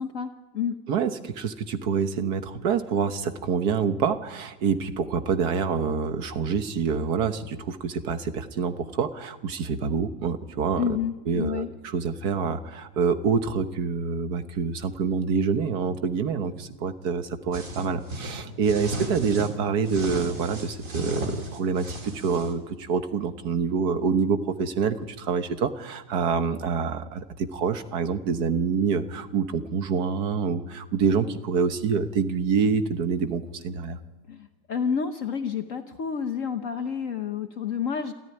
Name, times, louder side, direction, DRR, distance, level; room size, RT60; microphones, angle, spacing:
voice 1, 0.0-0.8 10.8-11.7 34.3-38.1, left 7 dB, 55° left, 7 dB, 1.2 m, -29 dB
voice 2, 0.9-10.8 11.3-34.0, right 6 dB, 70° right, 9 dB, 1.7 m, -26 dB
sound 1, 17.5-19.5 19.9-22.5, right 1 dB, 50° right, 3.4 m, -34 dB
27.5 x 14.5 x 9.7 m, 1.1 s
omnidirectional pair, 1.7 m